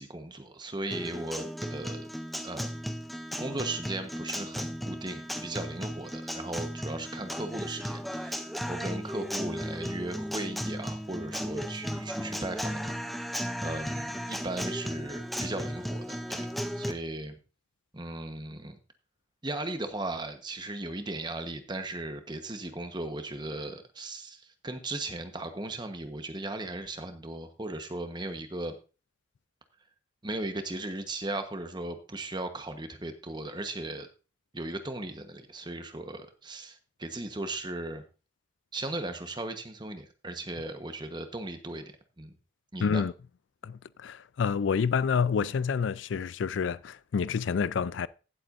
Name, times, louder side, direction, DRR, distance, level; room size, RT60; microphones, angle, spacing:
voice 1, 0.0-2.1 2.4-2.7 3.4-13.0 13.6-16.5 16.8-17.4 17.9-18.8 19.4-28.7 30.2-34.1 34.5-38.0 38.7-41.9 42.2-42.3 42.7-43.0, right 2 dB, 25° right, 1.1 m, -37 dB
Guitar, 0.9-16.9, equal, ahead, 0.6 m, -35 dB
voice 2, 42.8-43.1 43.6-48.1, left 6 dB, 80° left, 0.4 m, -28 dB
16.0 x 7.8 x 2.6 m
head